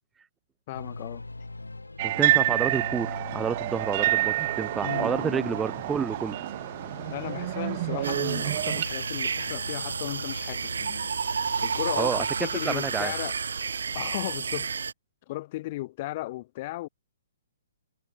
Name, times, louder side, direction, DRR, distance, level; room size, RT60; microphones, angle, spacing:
sound 1, 0.7-13.3, left 2 dB, 85° left, 2.8 m, -42 dB
voice 1, 0.7-1.2 4.8-5.6 7.1-11.1 11.6-13.4 13.9-14.7 15.3-16.9, left 18 dB, 40° left, 2.7 m, -35 dB
voice 2, 2.0-6.4 12.0-12.2 12.6-13.1, right 6 dB, 10° right, 1.0 m, -29 dB
sound 2, 2.0-8.8, right 16 dB, 40° right, 0.5 m, -28 dB
sound 3, 8.0-14.9, right 5 dB, 70° right, 3.3 m, -31 dB
figure-of-eight pair, 130°, 0 cm